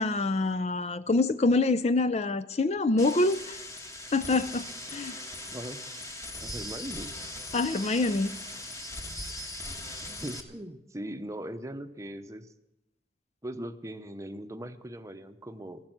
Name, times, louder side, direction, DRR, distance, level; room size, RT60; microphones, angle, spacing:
voice 1, 0.0-3.6 4.1-5.2 7.5-8.3, left 3 dB, 40° left, 0.5 m, -26 dB
sound 1, 3.0-10.4, left 1 dB, 20° left, 1.4 m, -40 dB
voice 2, 5.5-5.9 6.4-7.1 10.0-12.5 13.4-15.8, right 1 dB, 20° right, 0.8 m, -40 dB
14.5 x 12.0 x 7.8 m
head